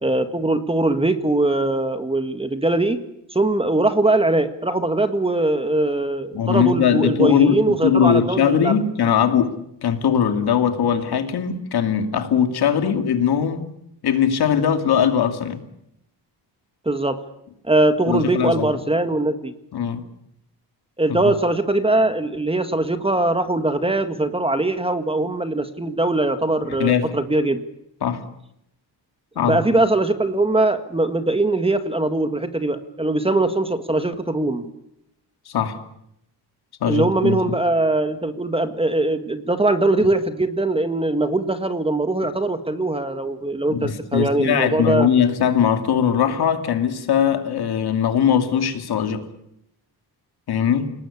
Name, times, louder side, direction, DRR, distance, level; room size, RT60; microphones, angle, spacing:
voice 1, 0.0-3.0 3.3-8.7 16.8-17.2 17.7-19.5 21.0-27.6 29.4-34.7 36.8-45.1, right 2 dB, 15° right, 9 dB, 1.7 m, -21 dB
voice 2, 6.3-9.6 9.8-13.6 14.0-15.6 18.1-18.7 19.7-20.1 21.1-21.2 26.7-27.1 28.0-28.2 29.4-29.6 35.5-35.8 36.8-37.6 43.7-49.3 50.5-50.9, left 8 dB, 65° left, 7 dB, 2.7 m, -20 dB
29.0 x 19.0 x 8.5 m, 0.81 s
cardioid pair, 125°, 42 cm